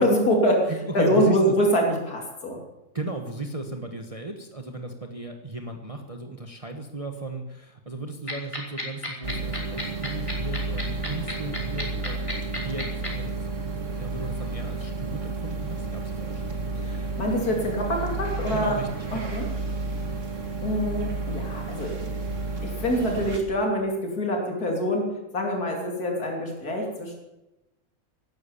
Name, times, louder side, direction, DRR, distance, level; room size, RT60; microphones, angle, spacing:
voice 1, 0.0-2.6 16.8-18.8 19.1-19.5 20.6-22.0 22.6-27.2, equal, 85° left, 1 dB, 3.5 m, -25 dB
voice 2, 0.7-1.5 2.9-13.5 14.0-16.6 18.5-18.9 19.1-19.4, right 2 dB, 25° right, 4 dB, 1.3 m, -36 dB
sound 1, 8.3-13.1, left 1 dB, 20° left, 3.5 m, -31 dB
sound 2, 9.2-23.4, right 3 dB, 55° right, 2.3 m, -31 dB
16.5 x 12.0 x 7.2 m, 0.97 s
omnidirectional pair, 1.6 m